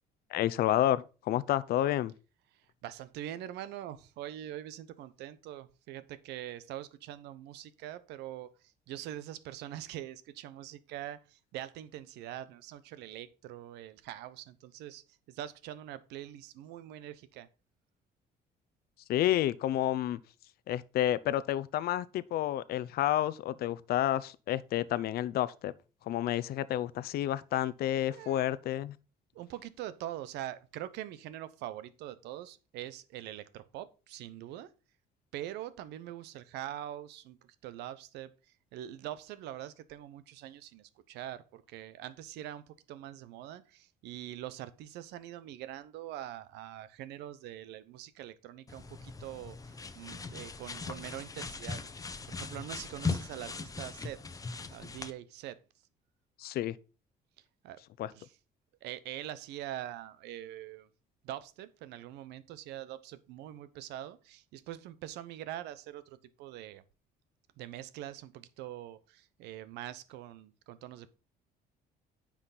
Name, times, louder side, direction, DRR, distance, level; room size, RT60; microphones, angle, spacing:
voice 1, 0.3-2.1 19.1-20.2 20.7-25.7 26.1-28.9 56.4-56.8 58.0-58.1, left 13 dB, 65° left, 0.6 m, -30 dB
voice 2, 2.8-17.5 28.0-28.4 29.3-34.7 35.3-38.3 38.7-51.8 52.3-54.2 54.7-55.6 57.6-57.8 58.1-58.3 58.8-60.9 61.2-66.8 67.6-71.1, right 12 dB, 90° right, 0.9 m, -43 dB
sound 1, 48.7-55.1, left 4 dB, 20° left, 0.8 m, -39 dB
9.9 x 5.9 x 4.0 m
cardioid pair, 110°, 17 cm